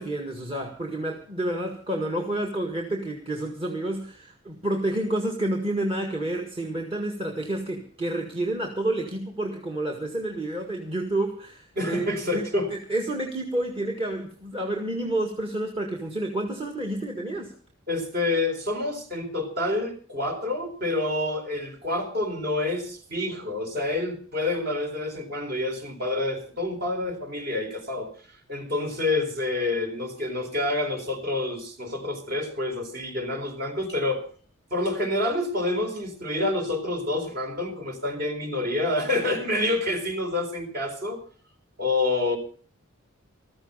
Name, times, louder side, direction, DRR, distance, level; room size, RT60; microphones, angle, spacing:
voice 1, 0.0-12.4 12.7-17.5, right 1 dB, 25° right, 1.8 m, -29 dB
voice 2, 11.8-12.7 17.9-34.2 34.7-41.2 41.8-42.4, left 2 dB, 45° right, 4.0 m, -28 dB
14.0 x 14.0 x 5.6 m
head